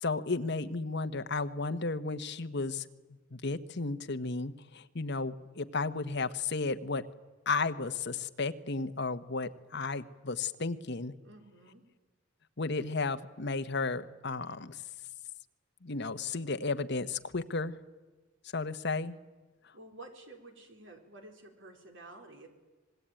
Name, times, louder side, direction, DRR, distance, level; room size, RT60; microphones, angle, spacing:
voice 1, 0.0-2.9 3.3-7.0 7.5-11.1 12.6-14.8 15.8-17.7 18.5-19.2, left 3 dB, 60° left, 9 dB, 1.2 m, -33 dB
voice 2, 11.2-11.8 19.7-22.5, right 2 dB, 70° right, 4 dB, 4.2 m, -51 dB
25.5 x 20.5 x 9.0 m, 1.3 s
head